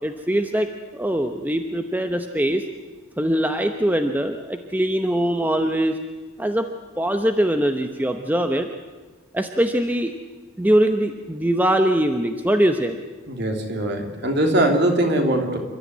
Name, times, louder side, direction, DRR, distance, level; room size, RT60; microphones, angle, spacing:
voice 1, 0.0-2.6 3.2-6.0 6.4-6.7 7.0-8.7 9.3-10.1 10.6-13.0, right 1 dB, 10° right, 6 dB, 0.9 m, -22 dB
voice 2, 13.3-15.6, right 1 dB, 55° right, 3 dB, 3.3 m, -21 dB
28.0 x 13.0 x 9.5 m, 1.4 s
head